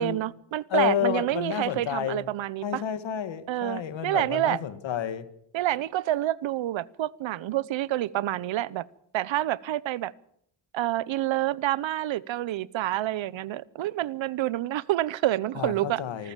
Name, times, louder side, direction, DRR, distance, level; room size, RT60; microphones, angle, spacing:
voice 1, 0.0-2.8 3.5-4.6 5.5-8.8 9.1-10.1 10.7-16.3, right 14 dB, 85° right, 21 dB, 0.9 m, -28 dB
voice 2, 0.7-2.2 2.6-5.3 15.6-16.3, left 9 dB, 80° left, 12 dB, 1.9 m, -30 dB
25.5 x 14.5 x 7.5 m, 0.71 s
wide cardioid pair, 140°, 44 cm